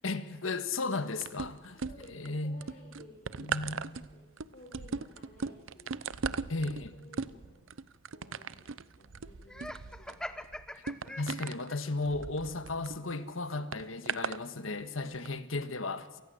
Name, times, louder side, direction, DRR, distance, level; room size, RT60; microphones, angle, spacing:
voice 1, 0.0-1.8 2.1-2.6 3.4-4.1 6.5-7.0 10.7-10.8 11.2-16.2, left 3 dB, 85° left, 1.6 m, -35 dB
sound 1, 1.2-2.3 2.6-13.0 13.7-14.4 15.1-15.3, right 5 dB, 80° right, 0.7 m, -38 dB
voice 2, 1.7-7.6 8.1-10.5 10.9-11.5 11.9-12.0, left 1 dB, 40° left, 4.3 m, -57 dB
Laughter, 9.5-11.8, left 1 dB, 5° left, 0.8 m, -43 dB
28.0 x 19.0 x 7.8 m
head